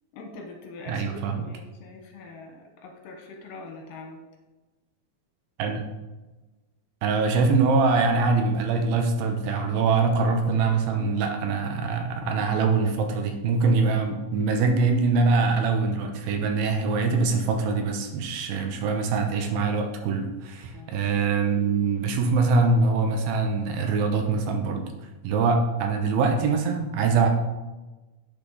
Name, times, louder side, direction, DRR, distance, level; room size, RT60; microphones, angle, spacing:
voice 1, 0.1-4.2 20.7-21.0, left 3 dB, 75° left, 2 dB, 2.7 m, -43 dB
voice 2, 0.9-1.5 5.6-5.8 7.0-24.9 25.2-27.3, right 4 dB, 80° right, 4 dB, 2.7 m, -23 dB
8.5 x 6.0 x 4.0 m, 1.1 s
omnidirectional pair, 4.2 m